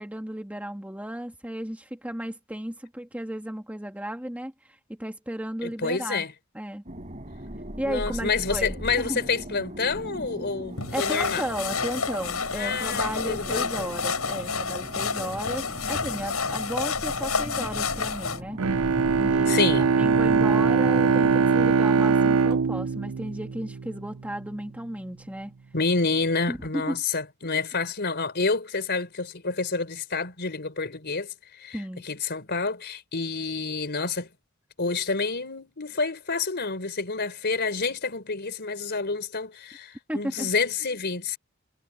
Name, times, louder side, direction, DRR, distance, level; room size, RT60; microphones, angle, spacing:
voice 1, 0.0-6.3 6.5-6.8 7.8-9.2 10.9-18.6 19.2-19.6 20.0-25.5 26.5-27.0 31.7-32.0 40.1-40.5, right 1 dB, 5° right, 1.9 m, -34 dB
voice 2, 5.6-6.3 7.8-11.5 12.5-13.9 19.5-19.9 25.7-31.3 31.6-31.8 32.0-34.3 34.8-41.4, left 4 dB, 50° left, 4.4 m, -28 dB
sound 1, 6.8-21.7, equal, 35° right, 5.2 m, -39 dB
sound 2, 10.8-18.4, left 5 dB, 80° left, 7.1 m, -29 dB
Bowed string instrument, 18.6-24.1, right 5 dB, 80° right, 0.6 m, -22 dB
head